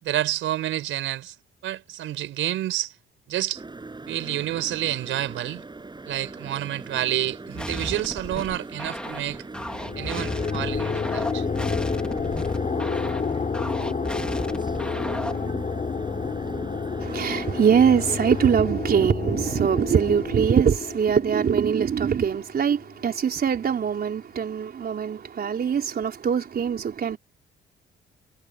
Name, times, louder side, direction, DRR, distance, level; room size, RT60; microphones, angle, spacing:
voice 1, 0.0-1.3 1.6-2.9 3.3-3.6 4.1-5.6 6.0-9.4 10.0-11.5, right 13 dB, 85° right, 4.8 m, -29 dB
sound 1, 3.5-18.5, right 3 dB, 20° right, 8.0 m, -39 dB
sound 2, 7.6-15.5, left 1 dB, 5° left, 2.8 m, -35 dB
sound 3, 9.6-22.9, left 5 dB, 35° left, 5.2 m, -30 dB
voice 2, 17.0-27.2, right 7 dB, 50° right, 3.9 m, -22 dB
cardioid pair, 90°, 20 cm